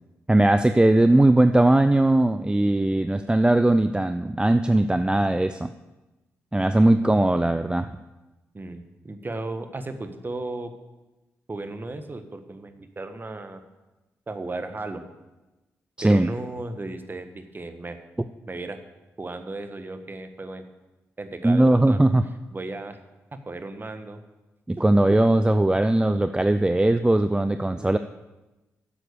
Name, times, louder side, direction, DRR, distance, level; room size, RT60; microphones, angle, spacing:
voice 1, 0.3-5.7 6.5-7.9 16.0-16.3 21.4-22.2 24.7-28.0, right 1 dB, 15° right, 10 dB, 0.5 m, -19 dB
voice 2, 8.5-10.7 11.5-13.6 14.3-15.0 16.0-18.0 18.5-18.8 19.2-20.6 21.2-22.0 22.5-23.0 23.3-24.2 24.8-24.9 27.6-28.0, right 2 dB, 30° right, 8 dB, 1.4 m, -35 dB
9.9 x 7.7 x 6.8 m, 1.1 s
hypercardioid pair, 40°, 6 cm